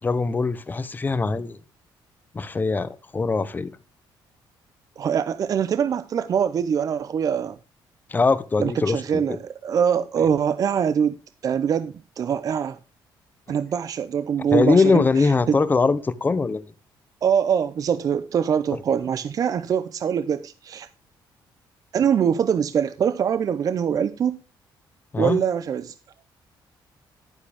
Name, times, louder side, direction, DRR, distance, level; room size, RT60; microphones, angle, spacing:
voice 1, 0.0-1.6 2.3-3.7 8.1-9.4 14.5-16.7 25.1-25.4, left 4 dB, 20° left, 0.7 m, -22 dB
voice 2, 5.0-7.6 8.6-12.8 13.5-15.6 17.2-20.9 21.9-24.4 25.2-25.9, right 7 dB, 45° right, 0.6 m, -23 dB
11.0 x 10.0 x 3.5 m
cardioid pair, 135°, 9 cm